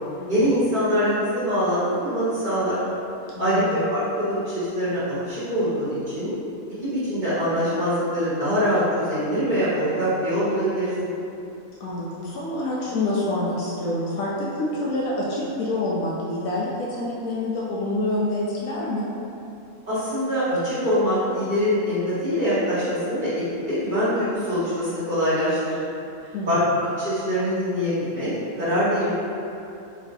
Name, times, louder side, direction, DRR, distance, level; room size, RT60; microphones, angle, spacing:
voice 1, 0.3-2.8 3.4-6.3 7.0-11.1 19.9-23.3 23.7-25.8 26.5-26.6 27.0-28.3 28.6-29.2, equal, 30° right, -13 dB, 1.5 m, -23 dB
voice 2, 3.3-3.8 11.8-19.1 26.3-26.6, left 2 dB, 70° left, -6 dB, 1.0 m, -27 dB
4.1 x 3.0 x 2.7 m, 2.7 s
omnidirectional pair, 1.7 m